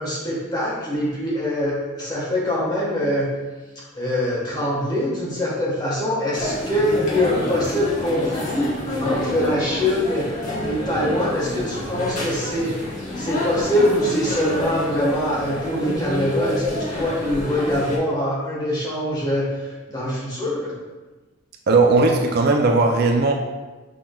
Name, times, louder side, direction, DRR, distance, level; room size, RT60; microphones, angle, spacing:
voice 1, 0.0-3.3 3.7-10.4 10.6-12.8 13.1-20.7, left 1 dB, 20° left, -7 dB, 1.3 m, -24 dB
sound 1, 6.3-18.0, left 1 dB, 35° left, 1.0 m, -28 dB
voice 2, 21.7-23.3, right 3 dB, 50° right, 2 dB, 0.3 m, -17 dB
6.1 x 3.6 x 2.3 m, 1.2 s
head